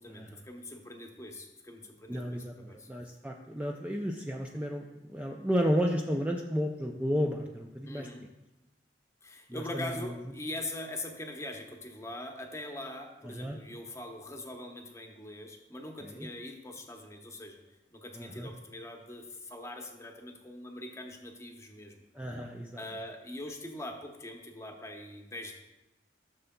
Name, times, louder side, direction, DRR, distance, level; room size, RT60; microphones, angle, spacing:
voice 1, 0.0-2.9 7.8-8.2 9.2-17.6 17.9-22.0 22.8-25.5, left 1 dB, 15° left, 3 dB, 0.9 m, -42 dB
voice 2, 2.1-8.1 9.5-9.9 13.2-13.6 16.0-16.3 18.2-18.5 22.1-22.8, equal, 10° right, 1 dB, 0.4 m, -32 dB
13.5 x 6.8 x 2.2 m, 0.98 s
head